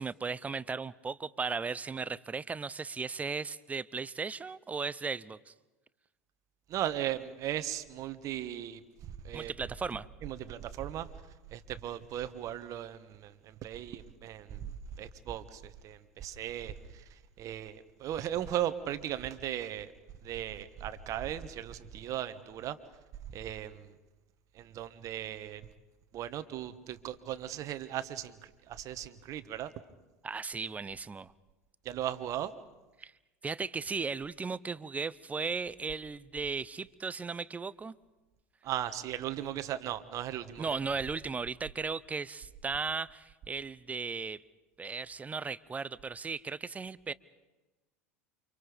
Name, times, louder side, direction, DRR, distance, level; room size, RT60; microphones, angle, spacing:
voice 1, 0.0-5.5 9.3-10.1 30.2-31.3 33.0-33.1 33.4-37.9 40.6-44.4 44.8-47.1, right 4 dB, 20° right, 0.8 m, -36 dB
voice 2, 6.7-8.8 9.2-9.5 10.2-11.1 11.5-17.0 17.4-19.9 20.2-22.8 23.3-23.9 24.5-25.6 26.1-29.7 31.8-32.5 38.6-40.7, right 11 dB, 45° right, 1.5 m, -37 dB
29.0 x 26.0 x 5.2 m
hypercardioid pair, 75°, 8 cm